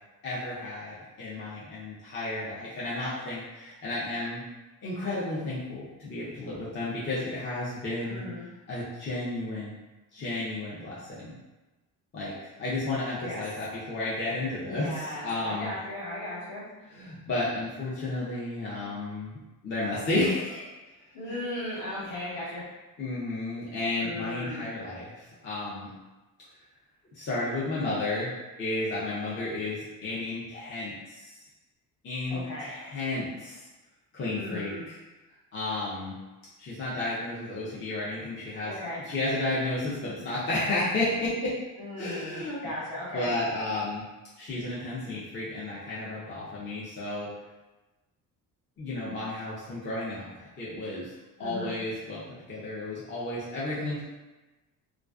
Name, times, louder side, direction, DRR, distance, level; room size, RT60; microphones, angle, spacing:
voice 1, 0.2-4.4 4.8-8.2 8.7-9.8 10.1-11.4 12.1-15.7 16.9-20.7 21.3-21.4 23.0-25.9 27.1-28.3 28.6-31.4 32.0-33.7 34.1-35.0 35.5-36.1 36.6-38.7 39.0-41.6 42.0-42.7 43.1-44.0 44.4-47.3 48.8-51.1 51.4-54.0, left 2 dB, 35° left, -8 dB, 0.5 m, -32 dB
voice 2, 8.0-8.4 13.2-13.4 14.6-16.6 21.1-22.6 24.0-24.7 32.3-32.7 34.3-34.8 38.6-39.0 41.8-43.3 51.4-51.7, left 1 dB, 60° left, -8 dB, 1.2 m, -37 dB
2.3 x 2.3 x 2.4 m, 1.1 s
cardioid pair, 125°, 36 cm